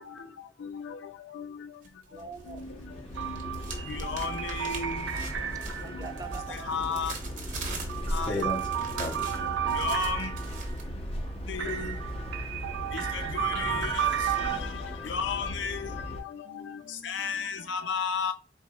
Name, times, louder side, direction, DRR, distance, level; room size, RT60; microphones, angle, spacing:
sound 1, 1.8-2.7 3.0-10.8, right 4 dB, 45° right, 1.0 m, -43 dB
sound 2, 2.1-16.2, equal, 35° left, 0.8 m, -37 dB
voice 1, 2.1-2.6 5.8-7.2, right 3 dB, 20° right, 0.4 m, -44 dB
sound 3, 3.2-6.9 7.7-10.8 11.6-14.6, right 10 dB, 85° right, 0.6 m, -33 dB
voice 2, 6.7-7.1 8.1-8.3 9.8-10.3 11.5-11.9 13.3-13.9 15.1-15.8 17.1-17.4 17.7-18.3, left 5 dB, 85° left, 0.5 m, -31 dB
voice 3, 16.4-17.8, left 2 dB, 70° left, 1.1 m, -56 dB
4.4 x 4.0 x 2.4 m
head